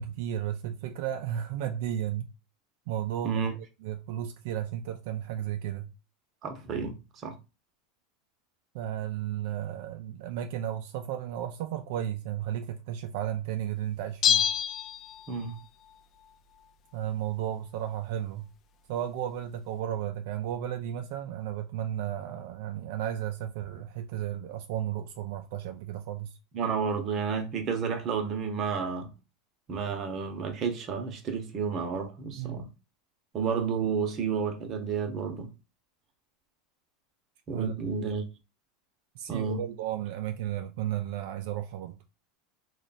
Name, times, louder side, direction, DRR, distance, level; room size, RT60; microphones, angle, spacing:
voice 1, 0.0-2.3 2.9-3.5 3.8-5.9 8.7-14.5 16.9-18.5 18.9-26.3 32.3-32.6 37.5-37.8 39.2-42.0, right 11 dB, 65° right, 0.3 m, -34 dB
voice 2, 6.4-7.0 7.2-7.3 15.3-15.6 26.5-29.1 29.7-32.7 33.3-35.5 37.5-38.2 39.3-39.6, right 6 dB, 35° right, 0.8 m, -31 dB
Bell, 14.2-15.6 15.9-16.0, left 9 dB, 35° left, 0.4 m, -27 dB
3.1 x 2.3 x 4.0 m
supercardioid pair, 140°, 0 cm